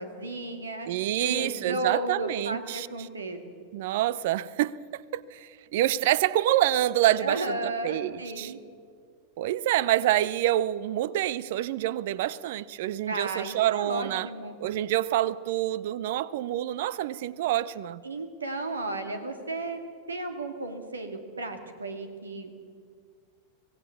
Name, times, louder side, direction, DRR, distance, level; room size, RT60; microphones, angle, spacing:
voice 1, 0.0-0.9 1.2-3.4 7.2-8.6 13.1-14.6 18.0-19.8 20.1-22.5, right 2 dB, 75° right, 2.3 m, -34 dB
voice 2, 0.9-2.9 3.7-8.5 9.4-14.3 14.6-18.0, right 13 dB, 55° right, 0.7 m, -27 dB
25.0 x 17.5 x 7.1 m
figure-of-eight pair, 90°, 0 cm